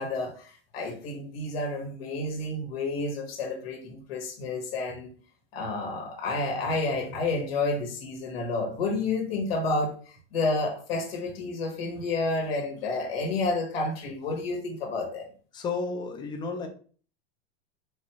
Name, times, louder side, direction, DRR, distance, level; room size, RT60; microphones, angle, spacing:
voice 1, 0.0-5.1 5.5-15.3, left 3 dB, 85° left, 2 dB, 1.4 m, -30 dB
voice 2, 15.5-16.7, left 4 dB, 15° left, 5 dB, 0.5 m, -32 dB
4.2 x 3.4 x 3.0 m, 0.42 s
supercardioid pair, 160°, 29 cm